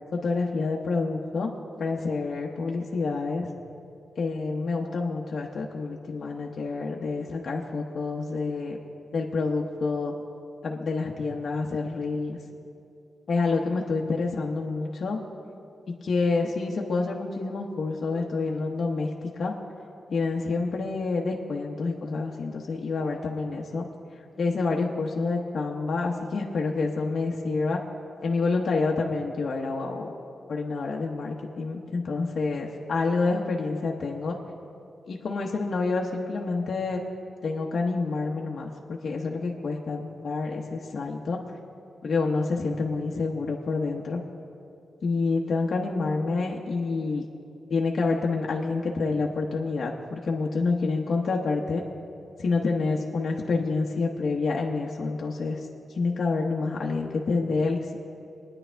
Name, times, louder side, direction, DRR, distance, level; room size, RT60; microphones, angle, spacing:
voice 1, 0.1-1.5 1.8-3.5 4.2-8.8 9.1-10.1 10.6-12.4 13.3-15.2 15.9-19.5 20.1-23.9 24.4-27.8 28.2-30.1 30.5-34.4 35.1-37.0 37.4-41.4 42.0-44.2 45.0-47.2 47.7-51.8 52.4-55.7 55.9-58.0, left 3 dB, 55° left, -1 dB, 1.0 m, -28 dB
22.5 x 9.9 x 3.4 m, 2.6 s
wide cardioid pair, 115°, 0 cm